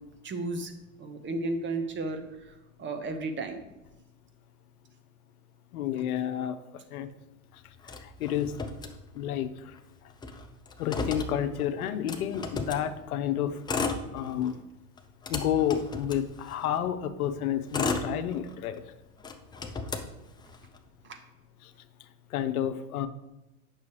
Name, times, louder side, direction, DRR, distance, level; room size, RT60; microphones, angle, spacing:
voice 1, 0.2-0.7 1.0-2.2 2.8-3.6 21.1-21.2, right 2 dB, 25° right, 6 dB, 0.9 m, -33 dB
voice 2, 5.7-6.6 6.9-7.1 8.0-8.5 9.1-9.5 10.8-13.6 14.1-14.5 15.3-18.8 22.3-23.1, left 10 dB, 75° left, 9 dB, 0.7 m, -30 dB
Motor vehicle (road), 7.8-9.5 9.8-9.9 10.1-12.9 13.5-14.6 15.0-16.8 17.4-18.8 19.2-20.8, left 3 dB, 10° left, 0.4 m, -34 dB
8.2 x 6.1 x 3.2 m, 0.98 s
hypercardioid pair, 95°, 44 cm